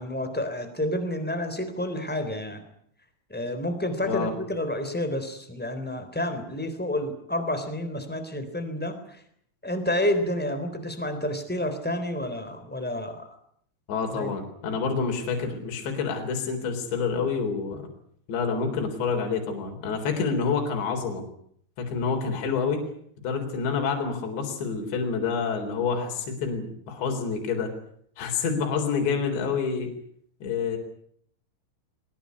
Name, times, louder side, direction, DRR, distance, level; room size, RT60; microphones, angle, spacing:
voice 1, 0.0-2.6 3.3-9.2 9.6-13.3 14.1-14.3, left 1 dB, 5° left, 8 dB, 2.5 m, -29 dB
voice 2, 13.9-17.9 18.3-21.2 21.8-22.9 23.2-27.7 28.2-29.9 30.4-30.8, left 5 dB, 60° left, 2 dB, 5.7 m, -28 dB
23.0 x 19.5 x 9.7 m, 0.68 s
omnidirectional pair, 5.9 m